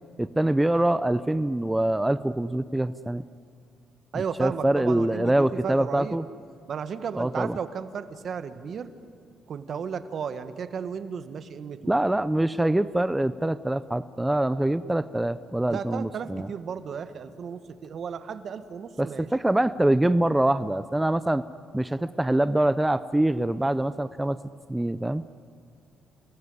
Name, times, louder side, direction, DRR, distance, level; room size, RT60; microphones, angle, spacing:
voice 1, 0.2-3.2 4.1-6.2 7.2-7.6 11.8-16.5 19.0-21.4 21.7-24.4 24.7-25.2, right 1 dB, 10° right, 14 dB, 0.6 m, -24 dB
voice 2, 4.1-6.2 6.7-8.9 9.5-11.9 15.7-19.3, right 6 dB, 55° right, 11 dB, 1.6 m, -34 dB
29.0 x 20.5 x 9.8 m, 2.3 s
cardioid pair, 90°, 0 cm